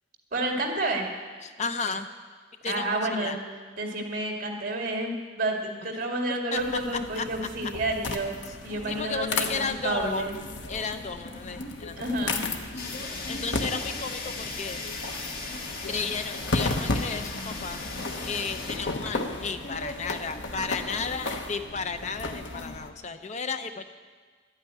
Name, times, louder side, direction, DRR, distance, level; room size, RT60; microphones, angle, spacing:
voice 1, 0.3-1.1 2.7-3.4 3.8-8.3 8.6-10.3 11.9-12.5, right 2 dB, 50° right, 1 dB, 2.2 m, -30 dB
voice 2, 1.4-2.1 2.6-3.4 6.3-6.6 7.1-7.3 8.9-10.3 10.7-12.0 12.8-12.9 13.3-14.8 15.9-17.8 18.2-23.8, left 5 dB, 40° left, 9 dB, 0.6 m, -33 dB
sound 1, 6.6-22.9, left 2 dB, 85° left, 1.1 m, -34 dB
Fire, 12.8-18.8, left 3 dB, 55° left, 1.6 m, -38 dB
12.0 x 9.0 x 9.2 m, 1.5 s
head